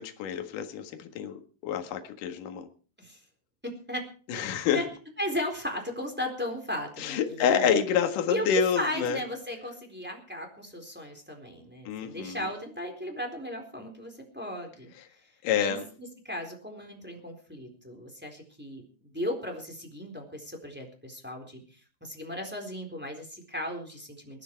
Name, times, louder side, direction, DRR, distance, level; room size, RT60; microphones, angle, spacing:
voice 1, 0.0-2.7 4.3-4.8 7.0-9.2 11.9-12.4 15.4-15.9, left 7 dB, 55° left, 6 dB, 2.8 m, -28 dB
voice 2, 3.6-4.1 4.3-4.5 4.7-4.9 5.2-7.8 8.3-8.5 8.7-14.9 15.5-18.8 19.1-24.4, left 1 dB, 5° right, 3 dB, 3.2 m, -36 dB
22.5 x 10.5 x 4.7 m, 0.40 s
omnidirectional pair, 5.2 m